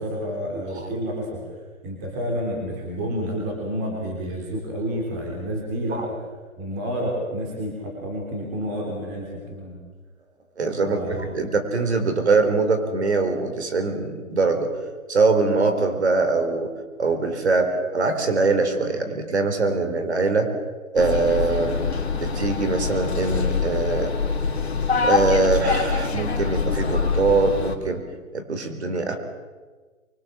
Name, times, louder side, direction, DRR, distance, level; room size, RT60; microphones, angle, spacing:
voice 1, 0.0-1.4 1.8-6.0 6.6-9.8 10.8-11.4, equal, 15° right, -1 dB, 3.3 m, -29 dB
voice 2, 10.6-14.7 15.1-16.7 17.0-20.5 20.9-24.1 25.0-28.0 28.3-29.2, right 3 dB, 50° right, 6 dB, 4.3 m, -22 dB
sound 1, 21.0-27.8, left 5 dB, 50° left, 3.1 m, -24 dB
24.5 x 23.5 x 7.5 m, 1.3 s
hypercardioid pair, 175°, 42 cm